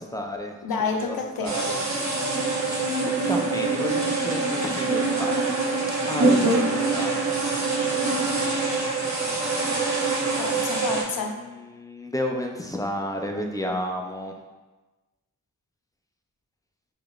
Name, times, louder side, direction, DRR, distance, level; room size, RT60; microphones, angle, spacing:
voice 1, 0.0-0.6 1.0-1.8 2.6-5.4 6.1-7.2 11.1-14.4, left 1 dB, 10° left, 2 dB, 0.5 m, -32 dB
voice 2, 0.6-1.6 10.4-11.4, left 4 dB, 75° left, 3 dB, 0.6 m, -29 dB
sound 1, 1.4-11.0, right 3 dB, 50° right, 1.0 m, -24 dB
4.8 x 2.9 x 2.4 m, 1.2 s
cardioid pair, 55°, 36 cm